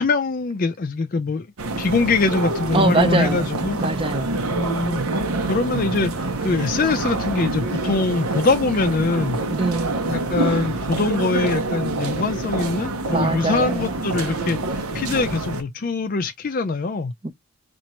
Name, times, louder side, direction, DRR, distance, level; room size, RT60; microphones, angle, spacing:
voice 1, 0.0-1.5 1.8-3.8 4.5-5.0 5.4-9.4 10.0-14.6 14.9-17.1, left 3 dB, 40° left, 0.4 m, -23 dB
sound 1, 1.6-15.6, right 2 dB, 85° right, 0.8 m, -26 dB
voice 2, 2.7-3.5 3.8-4.4 9.5-10.0 13.1-14.0 17.2-17.3, right 3 dB, 25° right, 0.5 m, -23 dB
2.9 x 2.5 x 4.3 m
head